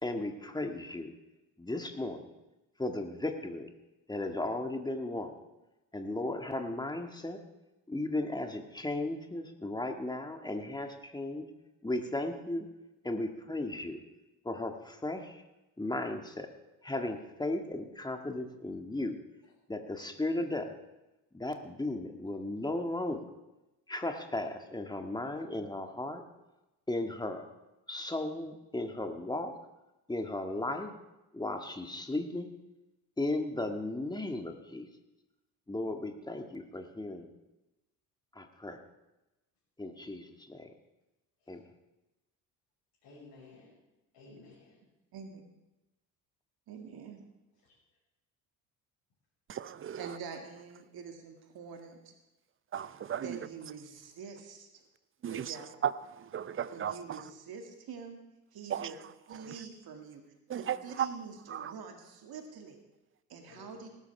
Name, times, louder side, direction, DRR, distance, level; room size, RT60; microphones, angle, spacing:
voice 1, 0.0-1.1 1.6-2.3 2.8-3.7 4.1-5.3 5.9-7.4 7.9-11.4 11.8-12.7 13.0-14.0 14.4-15.4 15.8-16.5 16.8-19.2 19.7-20.7 21.3-23.3 23.9-26.2 26.9-27.4 27.9-29.6 30.1-30.9 31.3-32.5 33.2-34.9 35.7-37.3 38.3-38.8 39.8-40.7 41.5-41.6, left 2 dB, 10° left, 1.8 m, -35 dB
voice 2, 43.0-43.8 44.1-44.8 47.6-47.7 63.5-63.9, left 3 dB, 55° left, 6.3 m, -55 dB
voice 3, 46.7-47.2 50.0-52.1 53.2-54.7 55.3-55.7 56.7-58.2 58.5-59.0 59.3-60.2 60.5-62.8 63.3-63.9, right 6 dB, 50° right, 2.1 m, -46 dB
voice 4, 49.5-50.2 52.7-53.4 55.2-57.3 58.7-58.9 59.4-59.6 60.5-61.1 61.5-61.7, right 9 dB, 25° right, 0.7 m, -36 dB
19.0 x 12.5 x 3.4 m
hypercardioid pair, 55°, 49 cm